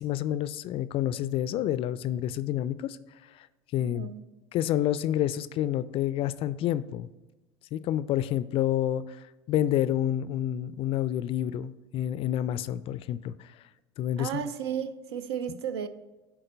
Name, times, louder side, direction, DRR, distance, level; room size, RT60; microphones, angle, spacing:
voice 1, 0.0-3.0 3.4-3.5 3.7-4.1 4.5-7.1 7.7-9.2 9.5-13.5 14.0-14.4, left 11 dB, 45° left, 0.4 m, -28 dB
voice 2, 3.8-4.2 14.2-15.9, right 8 dB, 75° right, 0.5 m, -33 dB
11.0 x 3.8 x 3.9 m
hypercardioid pair, 75°, 14 cm